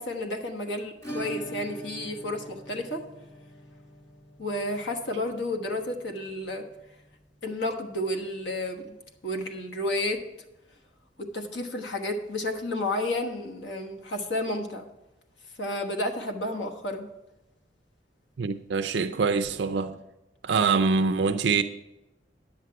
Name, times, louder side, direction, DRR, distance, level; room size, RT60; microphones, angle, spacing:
voice 1, 0.0-3.0 4.4-6.6 7.4-9.0 9.2-10.2 11.2-14.9 15.6-17.1, left 1 dB, 75° left, 1.2 m, -31 dB
Acoustic guitar / Strum, 1.0-9.6 9.9-10.0 10.3-10.4 10.7-10.8 12.9-13.0 14.1-14.2, right 1 dB, 20° left, 1.8 m, -44 dB
voice 2, 18.4-20.0 20.4-21.6, right 4 dB, 70° right, 0.5 m, -24 dB
10.0 x 8.0 x 4.7 m
head